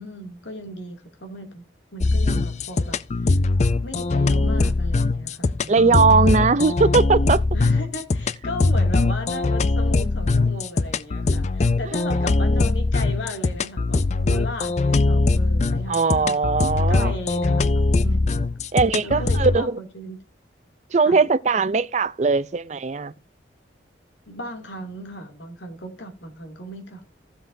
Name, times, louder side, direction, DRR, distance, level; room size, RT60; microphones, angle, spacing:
voice 1, 0.0-1.6 1.9-3.4 3.8-5.8 7.5-16.4 16.9-18.5 19.0-20.2 21.1-21.2 24.3-27.1, equal, 75° left, 2.4 m, -36 dB
sound 1, 2.0-19.6, left 3 dB, 35° left, 0.4 m, -21 dB
voice 2, 5.7-7.4 15.9-17.1 18.7-19.8 20.9-23.1, right 4 dB, 35° right, 0.4 m, -19 dB
15.0 x 7.8 x 2.6 m
head